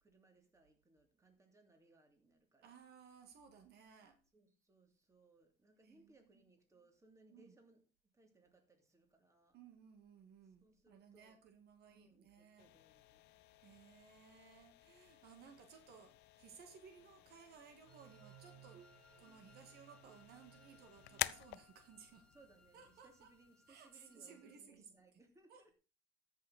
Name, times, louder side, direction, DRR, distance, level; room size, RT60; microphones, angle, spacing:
voice 1, 0.0-2.8 4.3-7.8 8.1-9.6 10.6-11.4 11.9-13.4 16.4-16.7 20.6-20.8 22.3-25.7, right 2 dB, 20° right, 2.9 m, -68 dB
voice 2, 2.6-4.2 5.8-6.3 7.3-7.5 9.5-12.7 13.6-18.8 19.2-22.3 22.7-23.3 23.7-24.9 25.5-25.7, right 6 dB, 70° right, 1.8 m, -60 dB
sound 1, 12.6-24.2, left 19 dB, 90° left, 0.5 m, -50 dB
sound 2, 17.8-22.4, right 14 dB, 55° right, 0.5 m, -64 dB
Wind instrument woodwind instrument, 17.9-24.6, left 3 dB, 5° left, 0.8 m, -70 dB
13.5 x 6.4 x 4.2 m
cardioid pair, 110°, 17 cm